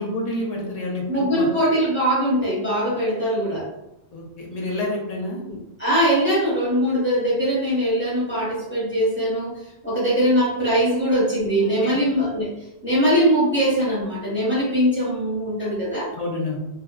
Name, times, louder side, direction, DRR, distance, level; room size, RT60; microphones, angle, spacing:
voice 1, 0.0-1.5 4.1-5.4 11.6-12.0 16.1-16.6, left 2 dB, 50° left, -2 dB, 0.5 m, -29 dB
voice 2, 1.1-3.7 5.4-12.5 12.8-16.1, equal, 10° left, -8 dB, 0.9 m, -21 dB
2.7 x 2.2 x 2.3 m, 0.88 s
omnidirectional pair, 1.1 m